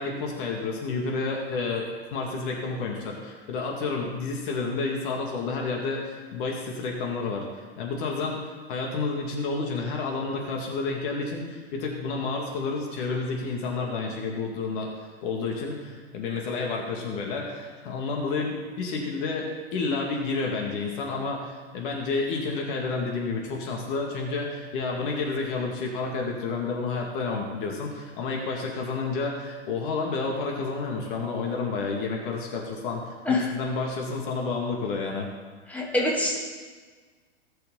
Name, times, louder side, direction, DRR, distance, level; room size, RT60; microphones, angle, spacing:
voice 1, 0.0-7.5 7.8-14.9 15.2-35.3, left 4 dB, 50° left, 0 dB, 2.3 m, -30 dB
voice 2, 35.7-36.4, left 2 dB, 5° left, -4 dB, 2.6 m, -25 dB
18.5 x 6.7 x 4.0 m, 1.5 s
figure-of-eight pair, 100°, 32 cm